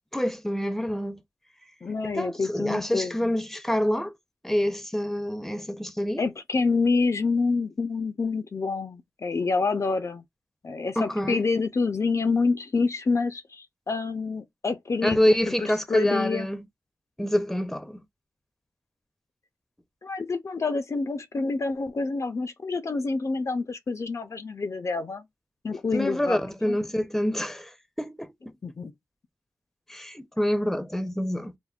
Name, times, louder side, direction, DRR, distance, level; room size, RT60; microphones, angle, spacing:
voice 1, 0.1-1.2 2.1-4.1 4.4-6.3 11.0-11.4 15.0-16.7 17.2-18.0 25.9-28.5 29.9-31.6, equal, 5° left, 0.6 m, -27 dB
voice 2, 1.8-3.3 6.2-10.2 10.6-16.5 20.0-25.3 25.6-26.4 26.6-26.8 28.6-28.9, left 4 dB, 60° left, 0.4 m, -27 dB
3.5 x 2.1 x 2.3 m
cardioid pair, 50°, 6 cm